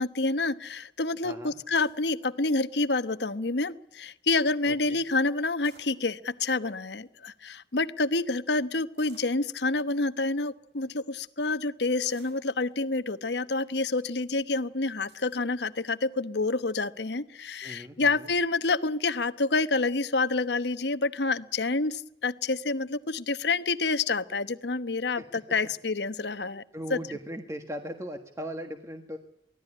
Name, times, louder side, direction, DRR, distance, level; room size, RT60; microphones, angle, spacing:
voice 1, 0.0-26.6 26.9-27.0, left 3 dB, 65° left, 13 dB, 1.1 m, -28 dB
voice 2, 1.2-1.6 4.7-5.0 17.6-18.3 25.2-25.3 26.7-29.2, equal, 15° right, 6 dB, 1.5 m, -38 dB
sound 1, 1.7-2.1 2.7-3.0 3.5-3.6 3.8-4.1 5.4-6.3 7.0-7.1 7.4-7.5 9.0-9.4 10.1-10.2 10.7-10.9 12.0-12.9 13.6-14.0 14.4-14.5 15.1-15.4, right 4 dB, 65° right, 6.9 m, -57 dB
24.0 x 16.5 x 9.9 m, 0.75 s
head